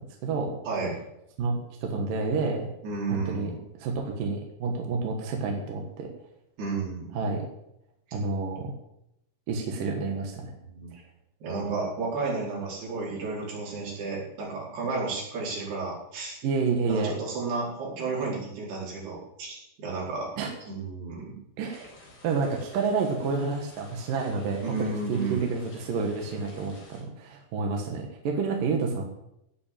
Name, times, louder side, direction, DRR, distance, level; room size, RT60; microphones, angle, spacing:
voice 1, 0.2-0.6 1.4-2.7 3.1-3.5 3.8-6.1 7.1-7.4 8.1-8.7 9.5-10.4 16.4-17.1 20.4-20.5 21.6-21.9 22.2-29.0, right 4 dB, 65° right, 2 dB, 3.0 m, -29 dB
voice 2, 2.8-3.6 6.6-7.2 10.6-11.0 11.4-16.4 16.9-20.3 20.7-21.2 24.6-25.5, right 3 dB, 80° right, -5 dB, 6.7 m, -32 dB
sound 1, 21.6-27.0, left 2 dB, 90° left, 6.3 m, -52 dB
16.5 x 6.1 x 8.6 m, 0.82 s
omnidirectional pair, 4.5 m